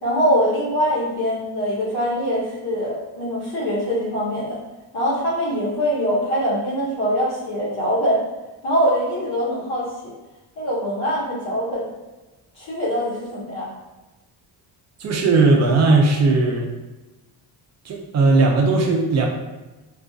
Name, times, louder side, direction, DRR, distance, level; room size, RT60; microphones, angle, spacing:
voice 1, 0.0-4.6 4.9-8.2 8.6-10.1 10.6-11.9 12.5-13.7, equal, 60° left, -7 dB, 1.1 m, -23 dB
voice 2, 15.0-16.7 17.8-19.3, right 3 dB, 40° right, 0 dB, 0.5 m, -17 dB
2.5 x 2.4 x 2.3 m, 1.1 s
cardioid pair, 130°, 43 cm